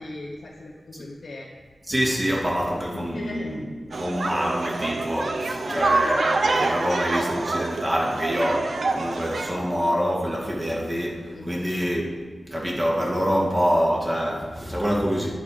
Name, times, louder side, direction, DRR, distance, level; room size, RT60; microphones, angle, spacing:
voice 1, 0.0-1.5 2.6-3.6 5.6-5.9 11.3-11.8, left 2 dB, 80° left, -4 dB, 1.2 m, -38 dB
voice 2, 1.9-3.6 3.9-12.1 12.5-15.4, equal, 20° right, -2 dB, 2.2 m, -25 dB
sound 1, 3.9-9.5, right 3 dB, 65° right, 0.7 m, -26 dB
10.5 x 6.7 x 5.0 m, 1.4 s
wide cardioid pair, 110°, 0 cm